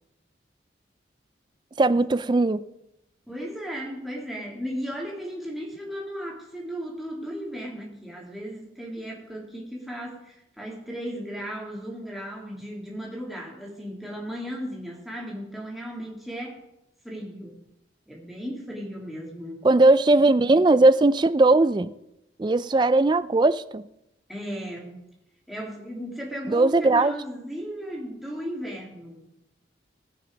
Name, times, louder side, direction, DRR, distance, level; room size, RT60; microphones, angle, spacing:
voice 1, 1.8-2.6 19.6-21.9 22.4-23.8 26.5-27.1, right 2 dB, 25° right, 16 dB, 0.3 m, -19 dB
voice 2, 3.3-16.6 17.0-17.6 18.1-19.7 24.3-25.0 25.5-29.3, equal, ahead, -3 dB, 2.2 m, -36 dB
18.0 x 6.1 x 5.1 m, 0.87 s
head